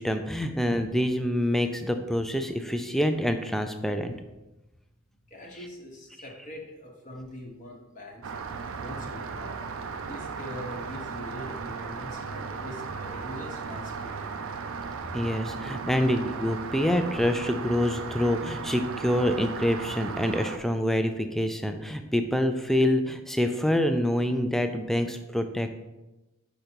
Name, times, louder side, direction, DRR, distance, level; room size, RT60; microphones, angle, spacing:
voice 1, 0.0-4.1 15.1-25.7, equal, ahead, 7 dB, 0.4 m, -26 dB
voice 2, 5.3-8.3 8.8-9.6 10.0-14.3, equal, 35° left, -1 dB, 0.9 m, -42 dB
Rain, 8.2-20.6, right 5 dB, 70° right, 0.5 m, -36 dB
5.4 x 5.1 x 4.5 m, 1.0 s
head